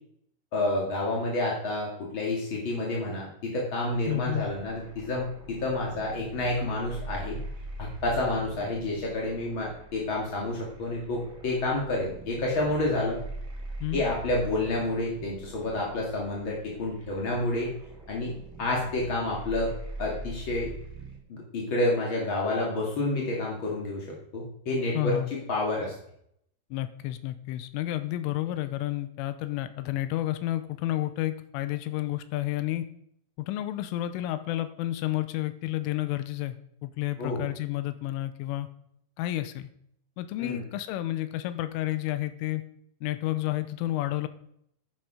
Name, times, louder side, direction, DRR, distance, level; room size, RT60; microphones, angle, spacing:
voice 1, 0.5-7.4 7.8-13.2 13.9-17.7 18.1-18.3 18.6-19.7 20.0-20.7 21.3-24.0 24.3-25.1 25.5-25.9 37.2-37.4 40.4-40.6, left 2 dB, 50° left, -2 dB, 1.4 m, -29 dB
sound 1, 3.9-21.2, right 2 dB, 25° right, 1.7 m, -43 dB
voice 2, 4.1-4.5 13.8-14.0 24.9-25.3 26.7-32.9 33.4-38.7 39.2-39.7 40.2-42.6 43.0-44.3, left 15 dB, 90° left, 12 dB, 3.3 m, -31 dB
10.5 x 10.0 x 5.0 m, 0.70 s
omnidirectional pair, 5.7 m